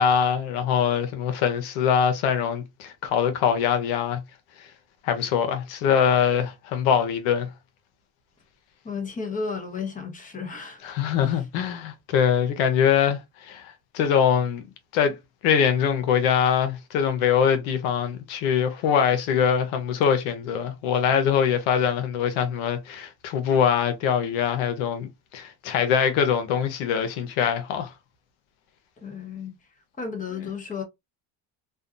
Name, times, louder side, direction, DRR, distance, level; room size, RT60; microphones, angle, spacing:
voice 1, 0.0-4.2 4.6-4.7 5.0-7.5 10.8-14.6 14.9-15.2 15.4-27.9, left 8 dB, 85° left, 0.7 m, -23 dB
voice 2, 8.8-10.9 29.0-29.5 30.0-30.8, left 5 dB, 15° left, 0.8 m, -33 dB
2.5 x 2.2 x 2.5 m
supercardioid pair, 90°, 48 cm